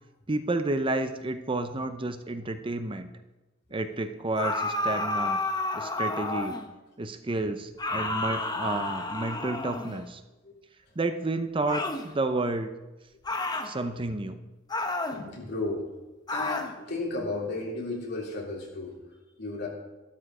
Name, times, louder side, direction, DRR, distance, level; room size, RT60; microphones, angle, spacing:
voice 1, 0.3-3.1 3.7-5.4 5.7-6.6 7.0-10.2 11.0-12.7 13.6-14.4, right 2 dB, 25° right, 9 dB, 0.6 m, -30 dB
sound 1, 4.4-6.7 7.8-10.0 11.7-12.1 13.2-13.7 14.7-15.2 16.3-16.7, left 2 dB, 20° left, 1.0 m, -30 dB
voice 2, 13.4-14.0 15.1-15.9 16.3-19.7, left 2 dB, 55° left, -2 dB, 3.4 m, -35 dB
12.5 x 12.5 x 4.9 m, 1.1 s
head